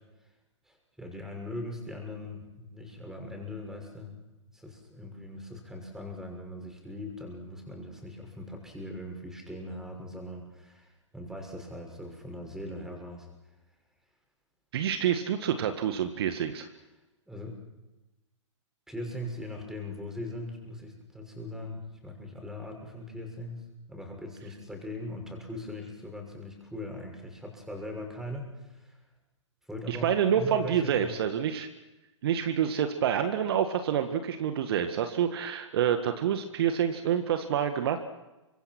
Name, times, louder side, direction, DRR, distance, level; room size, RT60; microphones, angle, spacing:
voice 1, 0.7-4.1 4.5-13.3 17.3-17.6 18.9-23.6 23.9-29.0 29.7-31.2, left 1 dB, 5° right, 2 dB, 6.4 m, -40 dB
voice 2, 14.7-16.7 29.9-31.7 32.2-38.0, right 9 dB, 50° right, 8 dB, 1.8 m, -27 dB
28.5 x 25.5 x 6.2 m, 1.1 s
figure-of-eight pair, 120°, 16 cm